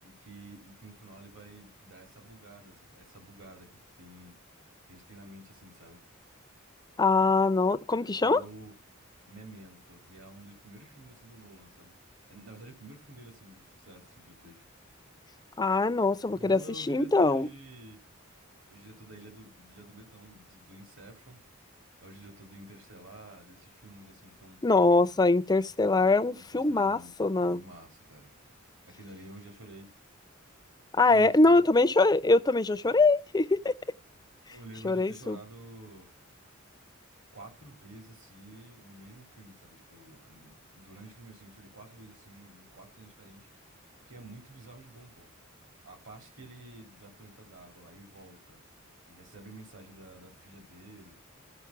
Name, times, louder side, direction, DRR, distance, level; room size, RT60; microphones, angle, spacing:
voice 1, 0.0-4.3 4.9-6.0 8.2-8.7 9.3-11.9 12.2-14.6 16.3-18.0 18.7-21.4 22.0-24.6 26.4-28.3 28.9-29.9 31.1-31.6 34.3-36.1 37.3-43.5 44.0-45.3 45.8-48.6 49.0-51.1, right 1 dB, 70° right, 3.5 m, -50 dB
voice 2, 7.0-8.4 15.6-16.6 16.9-17.5 24.6-27.6 31.0-33.7 34.8-35.4, left 3 dB, 20° left, 0.6 m, -23 dB
14.5 x 5.4 x 5.9 m
head